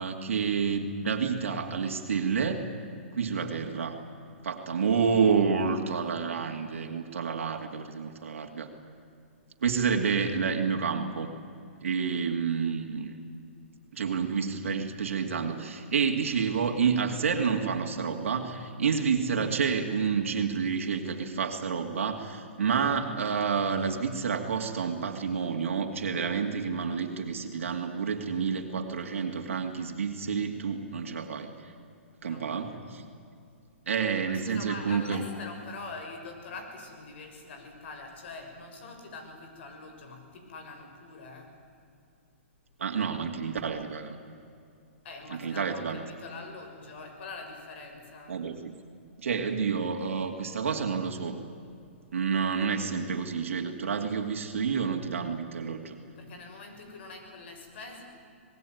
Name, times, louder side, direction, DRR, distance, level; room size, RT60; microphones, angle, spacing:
voice 1, 0.0-2.6 3.1-4.0 4.4-8.7 9.6-11.3 11.8-13.1 13.9-31.7 32.2-33.0 33.9-35.2 42.8-44.2 45.3-46.0 48.3-48.7 49.2-51.4 52.1-56.0, right 6 dB, 80° right, 3 dB, 2.5 m, -29 dB
voice 2, 4.5-4.9 32.2-33.1 34.2-41.5 45.0-48.4 56.2-58.0, left 3 dB, 60° left, 4 dB, 6.3 m, -44 dB
26.0 x 19.5 x 9.5 m, 2.4 s
hypercardioid pair, 140°, 7 cm